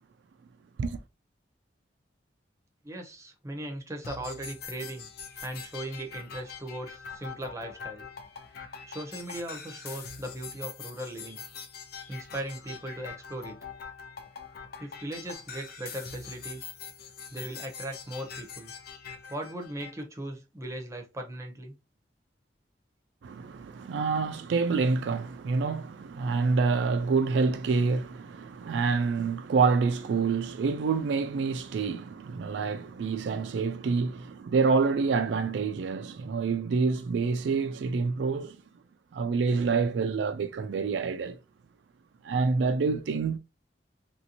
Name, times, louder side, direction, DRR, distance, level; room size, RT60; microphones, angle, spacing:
voice 1, 2.8-5.1 5.4-8.1 8.9-11.4 12.1-13.6 14.8-16.7 17.3-18.7 19.3-21.7, right 1 dB, 15° right, 0.7 m, -38 dB
sound 1, 4.0-20.0, left 6 dB, 60° left, 0.6 m, -43 dB
voice 2, 23.2-38.6 39.1-41.4 42.2-43.4, right 4 dB, 75° right, 0.4 m, -27 dB
3.0 x 2.7 x 2.9 m
head